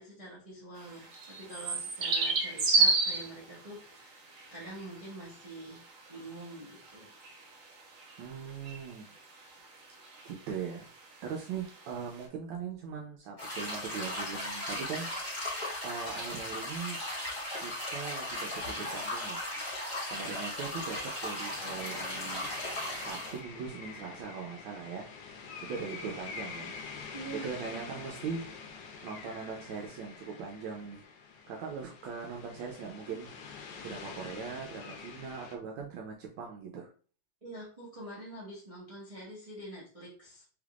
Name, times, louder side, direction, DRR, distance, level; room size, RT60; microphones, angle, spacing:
voice 1, 0.0-4.2 4.5-5.8 6.1-7.1 27.1-28.0 37.4-40.4, right 1 dB, 30° right, -6 dB, 0.7 m, -46 dB
sound 1, 0.8-12.2, right 4 dB, 60° right, 0.9 m, -33 dB
voice 2, 8.2-9.2 10.2-10.9 11.2-17.0 17.6-19.4 20.1-22.5 22.9-25.1 25.6-26.8 27.4-28.4 29.0-31.0 31.5-33.3 33.8-36.9, right 6 dB, 85° right, 0 dB, 1.4 m, -40 dB
sound 2, 13.4-23.4, left 1 dB, 25° left, 1.7 m, -37 dB
sound 3, 21.5-35.6, left 5 dB, 75° left, 1.2 m, -46 dB
3.4 x 3.4 x 2.4 m, 0.40 s
omnidirectional pair, 2.1 m